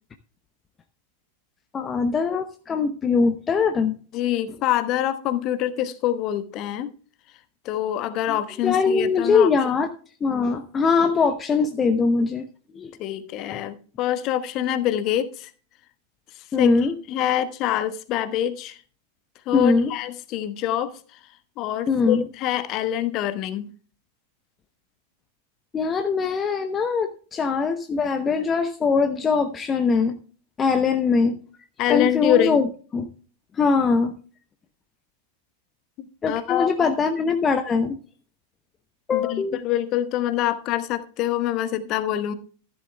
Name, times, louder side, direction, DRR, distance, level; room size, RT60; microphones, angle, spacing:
voice 1, 1.7-4.0 8.3-8.4 8.6-9.9 10.2-12.5 12.7-12.9 16.5-16.9 19.5-19.9 21.9-22.2 25.7-30.2 30.6-31.3 31.9-32.7 32.9-33.1 33.5-34.1 36.2-38.0 39.1-39.6, left 5 dB, 20° left, 0.8 m, -22 dB
voice 2, 4.1-6.9 7.6-9.5 13.0-15.5 16.6-16.7 17.1-18.8 19.5-20.9 21.6-23.7 31.8-32.6 36.0-37.0 39.1-42.3, left 12 dB, 40° left, 1.1 m, -25 dB
14.0 x 11.5 x 2.2 m
figure-of-eight pair, 90°, 0 cm